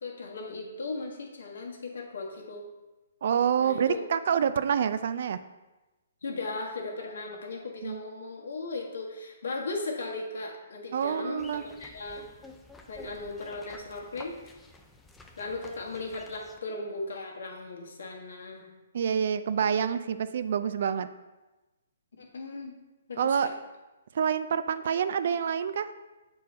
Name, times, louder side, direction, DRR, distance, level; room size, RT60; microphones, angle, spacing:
voice 1, 0.0-2.6 3.6-4.1 6.2-12.3 12.9-14.6 15.4-18.7 22.2-22.7 23.1-23.5, left 3 dB, 80° left, 0 dB, 1.5 m, -37 dB
voice 2, 3.2-5.4 7.8-8.0 10.9-11.6 18.9-21.1 23.2-23.5 24.1-25.9, right 7 dB, 60° right, 12 dB, 0.4 m, -27 dB
sound 1, 11.4-16.6, left 2 dB, 5° left, 0.4 m, -51 dB
7.1 x 4.5 x 4.2 m, 1.1 s
hypercardioid pair, 150°, 0 cm